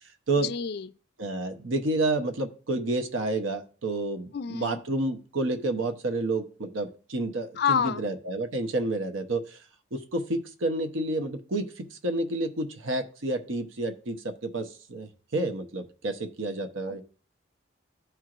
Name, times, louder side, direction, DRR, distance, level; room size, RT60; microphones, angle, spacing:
voice 1, 0.4-0.9 4.3-4.8 7.6-8.1 16.9-17.0, left 7 dB, 55° left, 0.3 m, -28 dB
voice 2, 1.2-9.6 9.9-17.0, right 2 dB, 90° right, 0.9 m, -30 dB
13.5 x 4.5 x 2.5 m
head